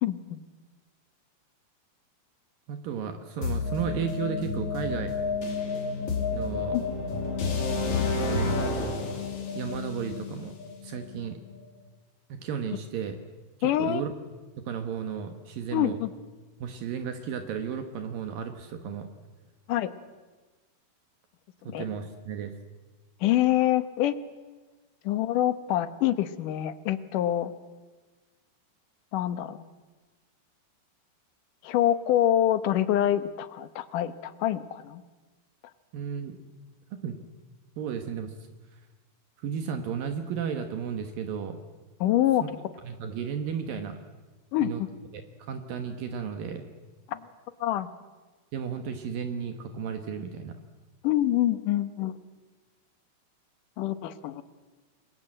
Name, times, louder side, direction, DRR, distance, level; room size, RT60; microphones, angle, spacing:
voice 1, 0.0-0.4 6.7-6.8 13.6-14.0 15.7-16.1 19.7-19.9 21.7-21.9 23.2-24.2 25.0-27.5 29.1-29.7 31.6-35.0 42.0-42.4 44.5-44.9 47.1-47.2 47.6-47.9 51.0-52.1 53.8-54.4, left 12 dB, 70° left, 13 dB, 2.4 m, -25 dB
voice 2, 2.7-5.1 6.3-6.8 8.1-8.9 9.5-10.5 10.8-11.4 12.3-13.2 13.6-14.1 14.6-16.0 16.6-19.1 21.6-22.5 35.9-36.4 37.0-37.1 37.8-38.3 39.4-41.6 42.4-42.5 42.8-44.0 44.6-44.8 45.1-46.6 48.5-50.6, right 7 dB, 70° right, 7 dB, 3.0 m, -34 dB
sound 1, 3.4-11.3, left 4 dB, 50° left, 4.2 m, -30 dB
28.5 x 22.5 x 7.8 m, 1.3 s
omnidirectional pair, 4.3 m